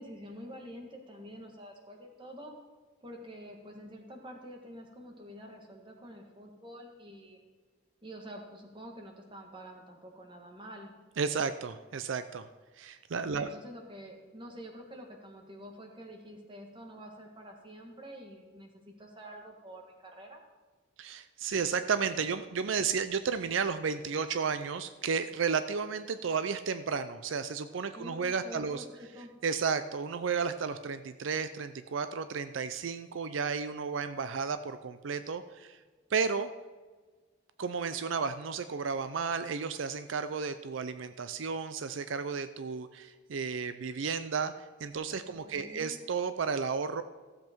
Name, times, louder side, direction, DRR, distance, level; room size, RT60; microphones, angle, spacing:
voice 1, 0.0-2.5 3.0-7.4 8.0-10.9 13.3-20.4 27.9-29.3 45.3-46.0, equal, 25° right, 2 dB, 1.6 m, -47 dB
voice 2, 11.2-12.5 12.8-13.5 21.0-28.8 29.4-35.8 36.1-36.5 37.6-44.5 44.8-47.0, right 5 dB, 80° right, 11 dB, 0.5 m, -33 dB
15.0 x 7.7 x 4.5 m, 1.4 s
head